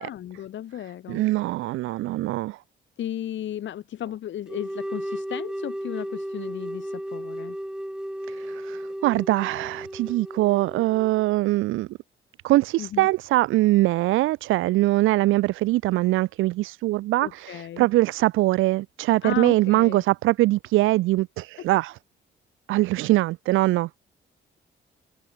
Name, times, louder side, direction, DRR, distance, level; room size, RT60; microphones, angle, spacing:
voice 1, 0.0-1.2 3.0-7.6 12.8-13.1 17.2-17.9 19.2-20.0 21.6-21.7, left 11 dB, 70° left, 2.9 m, -35 dB
voice 2, 1.1-2.6 8.3-11.9 12.4-21.9 22.7-23.9, right 17 dB, 90° right, 0.7 m, -22 dB
sound 1, 4.5-11.2, equal, 5° right, 4.3 m, -34 dB
open air
cardioid pair, 90°, 20 cm